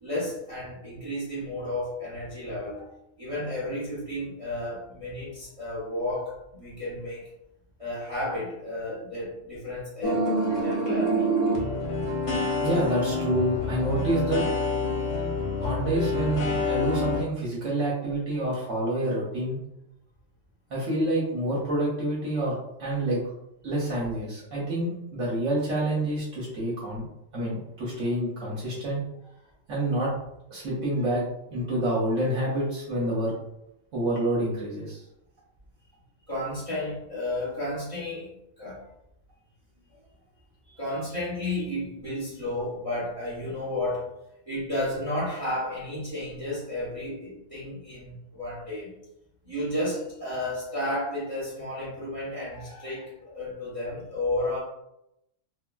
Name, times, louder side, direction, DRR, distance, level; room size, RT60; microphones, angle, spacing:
voice 1, 0.0-7.3 7.8-11.4 17.8-18.0 36.3-38.3 38.6-38.9 40.8-44.1 44.5-48.9 49.4-54.6, left 1 dB, 30° right, -8 dB, 0.7 m, -32 dB
sound 1, 10.0-17.2, left 1 dB, 45° left, 0.4 m, -27 dB
voice 2, 12.6-14.4 15.6-19.6 20.7-23.2 23.6-27.0 27.3-29.0 29.7-30.1 30.5-31.2 31.5-33.3 33.9-35.0 40.7-40.8, right 1 dB, 70° right, -6 dB, 1.1 m, -27 dB
3.6 x 2.1 x 2.2 m, 0.84 s
omnidirectional pair, 1.3 m